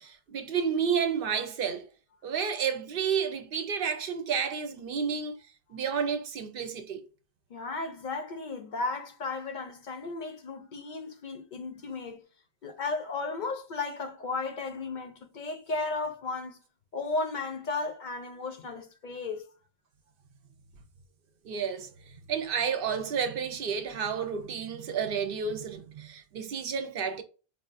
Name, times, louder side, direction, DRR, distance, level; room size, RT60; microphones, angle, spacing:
voice 1, 0.0-1.9 2.2-5.4 5.7-7.0 21.4-21.9 22.3-27.2, right 6 dB, 65° right, 0.7 m, -31 dB
voice 2, 7.5-12.2 12.6-16.6 16.9-19.5, left 3 dB, 55° left, 0.7 m, -34 dB
4.7 x 2.4 x 2.5 m
omnidirectional pair, 1.0 m